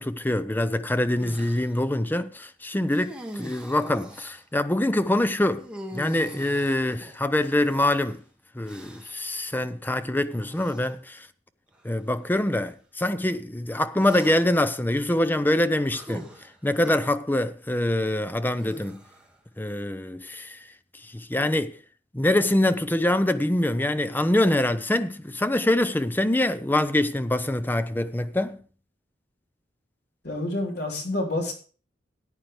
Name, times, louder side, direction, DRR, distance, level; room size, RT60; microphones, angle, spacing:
voice 1, 0.0-5.7 5.9-8.2 8.5-11.3 11.8-16.3 16.6-19.0 19.6-20.6 21.0-21.8 22.1-28.6, left 1 dB, 10° left, 0.6 m, -24 dB
sound 1, 1.2-1.7 2.9-4.4 5.6-7.9 8.6-9.3 10.4-10.9 11.7-11.9 14.0-14.7 15.9-17.0 18.5-19.4, equal, 5° right, 1.8 m, -42 dB
voice 2, 30.2-31.5, left 1 dB, 65° left, 3.6 m, -28 dB
14.5 x 9.3 x 3.3 m
head